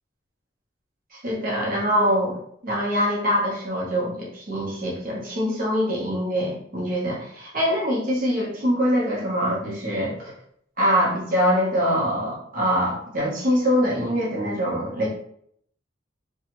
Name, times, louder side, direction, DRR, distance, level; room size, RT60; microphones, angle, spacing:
voice 1, 1.1-10.3 10.8-15.1, equal, 50° right, -4 dB, 0.9 m, -24 dB
2.7 x 2.3 x 2.9 m, 0.67 s
head